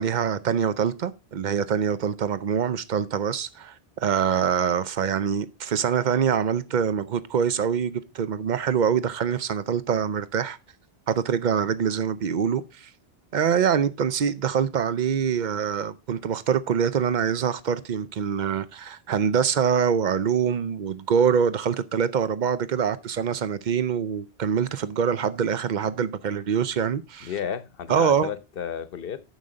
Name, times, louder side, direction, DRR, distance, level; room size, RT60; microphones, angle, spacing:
voice 1, 0.0-3.7 4.0-10.6 11.1-12.9 13.3-27.3 27.9-28.3, right 7 dB, 55° right, 0.6 m, -24 dB
voice 2, 27.2-29.2, left 8 dB, 65° left, 1.0 m, -33 dB
9.2 x 6.5 x 3.8 m
omnidirectional pair, 1.1 m